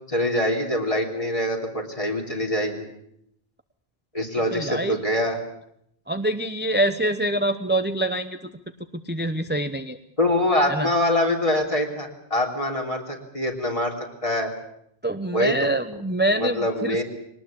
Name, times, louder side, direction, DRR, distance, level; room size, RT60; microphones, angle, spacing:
voice 1, 0.1-2.9 4.1-5.4 10.2-14.5 15.3-15.6 16.4-17.0, left 1 dB, 35° left, 2 dB, 3.6 m, -24 dB
voice 2, 4.5-5.0 6.1-8.5 8.9-10.0 10.7-10.9 15.0-17.0, right 1 dB, 10° right, 9 dB, 0.8 m, -25 dB
22.5 x 19.0 x 8.8 m, 0.74 s
omnidirectional pair, 1.0 m